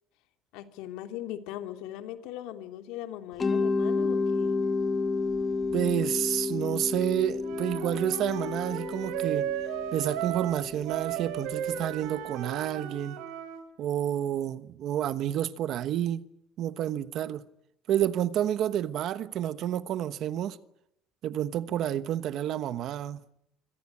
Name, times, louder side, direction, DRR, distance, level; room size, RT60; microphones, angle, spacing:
voice 1, 0.5-4.6 21.7-21.8, left 12 dB, 75° left, 3.1 m, -39 dB
Mallet percussion, 3.4-12.2, left 4 dB, 20° left, 1.1 m, -31 dB
voice 2, 5.7-9.5 9.9-13.2 13.8-16.3 16.6-17.5 17.9-20.6 21.2-23.2, right 11 dB, 45° right, 1.1 m, -29 dB
Wind instrument woodwind instrument, 7.4-13.7, right 11 dB, 85° right, 4.6 m, -35 dB
26.5 x 25.5 x 8.6 m
cardioid pair, 175°, 0 cm